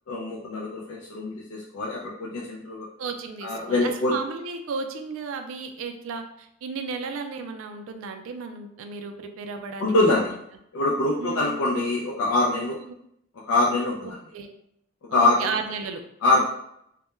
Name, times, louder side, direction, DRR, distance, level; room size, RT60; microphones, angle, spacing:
voice 1, 0.1-2.9 3.4-4.1 9.8-10.3 10.7-12.8 13.5-14.2 15.1-15.5 16.2-16.4, left 2 dB, 85° left, -4 dB, 0.4 m, -24 dB
voice 2, 3.0-10.3 11.2-11.6 12.7-12.8 14.0-14.5 15.1-16.0 16.3-16.4, right 4 dB, 70° right, 6 dB, 0.3 m, -34 dB
2.2 x 2.1 x 3.0 m, 0.76 s
head